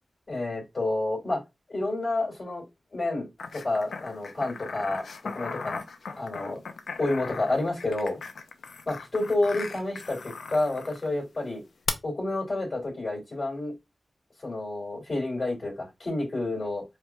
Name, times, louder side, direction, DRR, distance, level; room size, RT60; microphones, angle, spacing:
voice 1, 0.3-1.4 1.7-2.7 2.9-3.3 3.5-5.0 5.3-5.8 6.2-6.6 7.0-8.2 8.9-11.6 12.0-13.7 14.4-16.8, left 2 dB, 50° left, 2.5 m, -29 dB
sound 1, 3.4-11.1 11.9-12.0, left 5 dB, 90° left, 0.5 m, -38 dB
4.6 x 2.8 x 2.3 m
wide cardioid pair, 65°, 0 cm